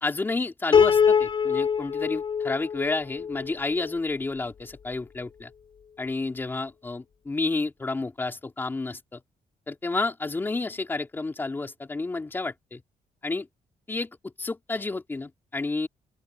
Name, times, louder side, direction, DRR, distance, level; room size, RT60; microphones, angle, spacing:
voice 1, 0.0-5.5 6.0-9.2 9.7-12.8 13.2-13.5 13.9-15.9, left 3 dB, 15° left, 2.6 m, -30 dB
Piano, 0.7-4.0, left 7 dB, 40° left, 3.8 m, -23 dB
open air
cardioid pair, 170°, 13 cm